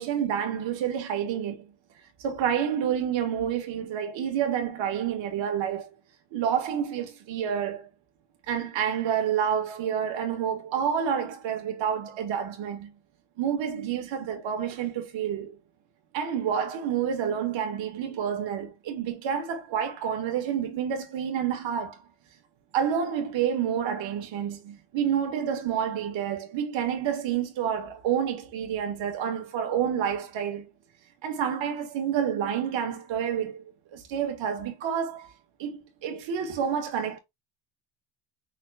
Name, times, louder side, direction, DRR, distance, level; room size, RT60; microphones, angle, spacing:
voice 1, 0.0-1.7 2.2-5.9 6.3-7.9 8.5-12.9 13.4-15.6 16.1-22.0 22.7-30.7 31.2-33.6 33.9-35.3 35.6-37.2, right 8 dB, 70° right, 1.6 m, -29 dB
5.7 x 2.1 x 3.4 m
cardioid pair, 105°, 47 cm